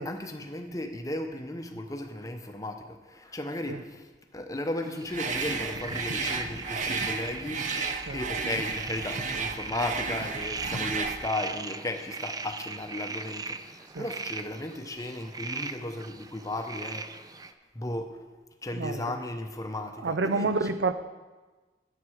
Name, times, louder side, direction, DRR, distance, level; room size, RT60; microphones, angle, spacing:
voice 1, 0.0-4.1 4.3-17.5 17.7-18.2 18.6-20.6, left 1 dB, 20° left, 5 dB, 0.9 m, -35 dB
sound 1, 4.8-17.5, right 4 dB, 20° right, 0.4 m, -39 dB
sound 2, 5.1-11.2, right 4 dB, 45° right, 0.8 m, -33 dB
voice 2, 20.0-20.9, right 3 dB, 80° right, 12 dB, 0.5 m, -28 dB
8.8 x 7.8 x 6.4 m, 1.3 s
head